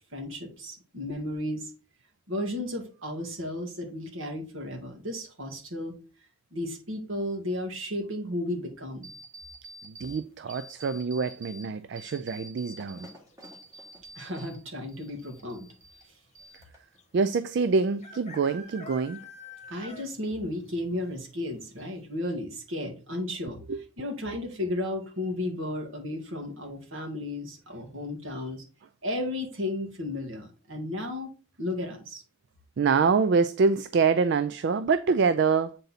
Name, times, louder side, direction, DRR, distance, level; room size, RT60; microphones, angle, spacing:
voice 1, 0.1-1.7 2.3-6.0 6.5-9.1 14.2-15.7 19.7-23.6 24.0-28.6 29.0-31.3 31.6-32.2, left 1 dB, 70° right, 1.9 m, -34 dB
sound 1, 9.0-10.2 10.5-11.6 12.0-14.6 14.9-16.0 16.3-17.0, equal, 15° right, 1.4 m, -47 dB
voice 2, 9.8-13.1 17.1-19.2 23.7-23.8 32.8-35.8, right 5 dB, 50° right, 0.3 m, -25 dB
sound 2, 10.5-10.9 12.8-13.1 13.4-13.5 13.7-14.3 15.0-15.1 15.3-15.4 17.0-17.1 18.0-20.3 20.7-20.8 21.2-21.3 21.8-21.9, left 3 dB, 30° left, 1.1 m, -47 dB
8.0 x 4.0 x 4.1 m
head